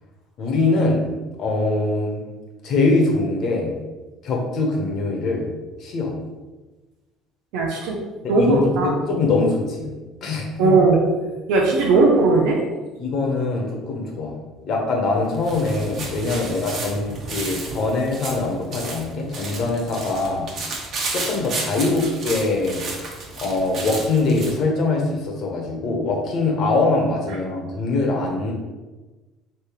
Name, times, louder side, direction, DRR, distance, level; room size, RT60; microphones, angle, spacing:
voice 1, 0.4-2.2 2.6-3.7 4.2-5.5 5.8-6.1 8.2-9.9 10.2-11.0 13.0-14.3 14.7-20.5 21.1-22.8 23.4-28.5, left 3 dB, 60° left, 0 dB, 1.2 m, -23 dB
voice 2, 7.5-7.9 8.3-8.9 10.6-11.1 11.5-12.6, right 3 dB, 80° right, -1 dB, 0.7 m, -17 dB
sound 1, 15.1-24.6, right 3 dB, 50° right, 1.2 m, -32 dB
3.5 x 3.1 x 4.6 m, 1.2 s
supercardioid pair, 85°, 0 cm